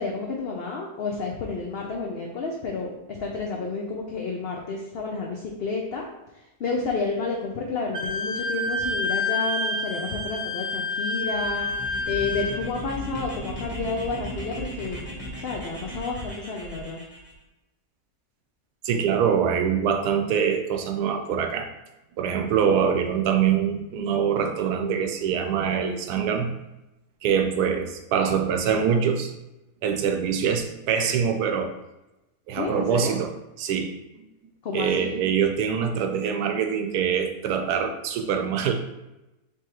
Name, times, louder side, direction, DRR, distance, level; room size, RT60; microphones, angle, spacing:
voice 1, 0.0-6.1 6.3-11.7 12.1-15.0 15.4-17.0 32.6-33.2 34.6-35.2, left 4 dB, 80° left, 0 dB, 0.5 m, -30 dB
Wind instrument woodwind instrument, 7.9-12.6, left 3 dB, 40° right, 0.7 m, -28 dB
sound 1, 11.2-17.3, right 1 dB, 15° left, 1.2 m, -37 dB
voice 2, 18.8-21.7 22.2-26.5 27.2-29.3 29.8-31.7 32.5-33.3 33.6-34.0 34.7-38.7, right 7 dB, 80° right, 5 dB, 1.1 m, -24 dB
4.6 x 3.4 x 2.9 m, 0.96 s
omnidirectional pair, 1.7 m